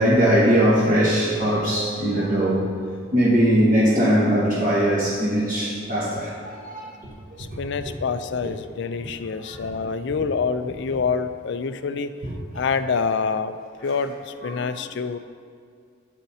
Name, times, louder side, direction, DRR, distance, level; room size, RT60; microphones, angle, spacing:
voice 1, 0.0-2.7 3.1-7.1 7.4-7.5 9.0-9.1 9.4-9.6 12.2-12.3 14.4-14.7, equal, 40° right, -8 dB, 1.3 m, -20 dB
voice 2, 7.4-12.1 12.5-13.6 13.8-15.2, left 5 dB, 55° left, 11 dB, 0.4 m, -26 dB
13.0 x 8.2 x 2.8 m, 2.2 s
head